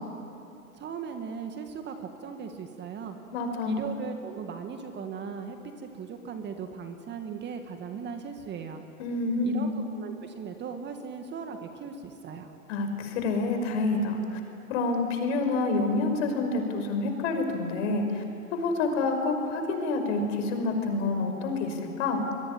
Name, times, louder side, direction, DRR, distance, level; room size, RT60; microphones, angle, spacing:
voice 1, 0.7-3.2 3.7-8.8 9.4-12.5, right 6 dB, 25° right, 6 dB, 2.0 m, -38 dB
voice 2, 3.3-3.8 9.0-9.7 12.7-14.4 14.7-18.2 18.5-22.2, left 3 dB, 55° left, 5 dB, 5.6 m, -28 dB
25.5 x 22.5 x 9.9 m, 2.7 s
hypercardioid pair, 120°, 44 cm